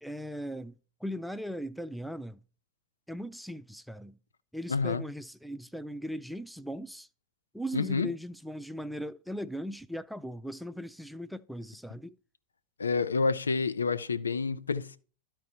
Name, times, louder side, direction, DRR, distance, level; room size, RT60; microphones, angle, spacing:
voice 1, 0.0-2.4 3.1-4.2 4.5-7.1 7.5-12.2, equal, ahead, 0.4 m, -38 dB
voice 2, 4.7-5.0 7.7-8.1 12.8-15.0, left 4 dB, 75° left, 0.6 m, -28 dB
13.0 x 4.5 x 4.2 m
figure-of-eight pair, 90°, 0 cm